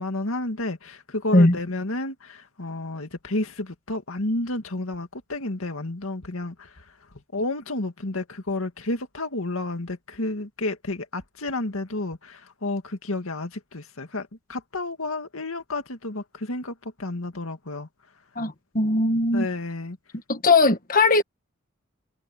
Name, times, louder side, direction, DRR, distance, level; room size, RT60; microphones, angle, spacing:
voice 1, 0.0-6.7 7.3-17.9 19.3-20.0, left 2 dB, 85° left, 2.1 m, -31 dB
voice 2, 18.4-19.5 20.3-21.2, left 2 dB, 40° left, 1.6 m, -19 dB
head